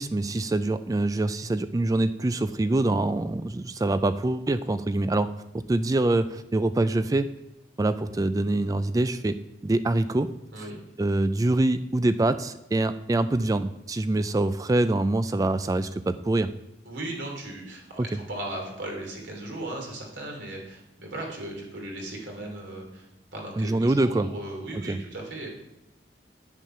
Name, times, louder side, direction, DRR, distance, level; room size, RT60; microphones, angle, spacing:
voice 1, 0.0-5.3 5.7-7.3 7.8-9.4 9.6-10.3 11.0-16.5 23.6-24.3 24.7-25.0, right 2 dB, 20° right, 12 dB, 0.3 m, -25 dB
voice 2, 16.8-23.1 23.3-25.5, right 1 dB, 85° right, 0 dB, 3.0 m, -37 dB
9.3 x 8.4 x 5.6 m, 0.87 s
head